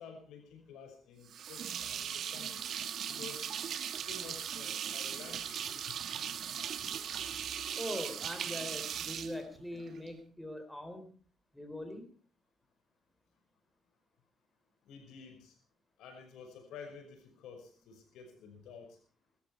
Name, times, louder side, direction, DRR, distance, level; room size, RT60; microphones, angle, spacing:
voice 1, 0.0-2.6 3.1-3.6 4.0-6.4 14.8-15.6 16.0-19.0, left 5 dB, 85° left, 6 dB, 5.6 m, -51 dB
sound 1, 1.3-10.1, right 9 dB, 65° right, 1.7 m, -39 dB
voice 2, 7.8-11.1 11.5-12.1, left 1 dB, 5° left, 7 dB, 4.3 m, -42 dB
21.0 x 13.5 x 4.7 m, 0.38 s
cardioid pair, 90°, 0 cm